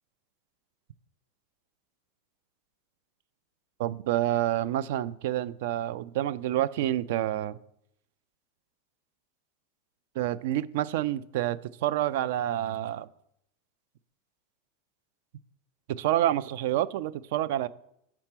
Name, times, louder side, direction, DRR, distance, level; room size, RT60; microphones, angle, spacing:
voice 1, 3.8-7.6 10.2-13.1 15.9-17.7, right 13 dB, 70° right, 0.3 m, -28 dB
5.9 x 4.4 x 5.9 m
supercardioid pair, 125°, 0 cm